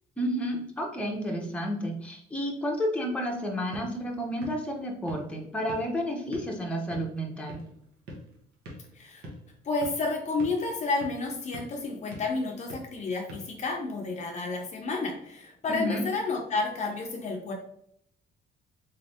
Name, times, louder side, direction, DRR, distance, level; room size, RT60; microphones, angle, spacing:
voice 1, 0.2-7.6 15.7-16.0, equal, 5° left, 0 dB, 0.8 m, -31 dB
sound 1, 3.4-14.2, equal, 85° right, 1.2 m, -47 dB
voice 2, 9.6-17.5, left 3 dB, 45° left, 2 dB, 0.6 m, -31 dB
3.9 x 3.2 x 2.7 m, 0.70 s
cardioid pair, 110°, 17 cm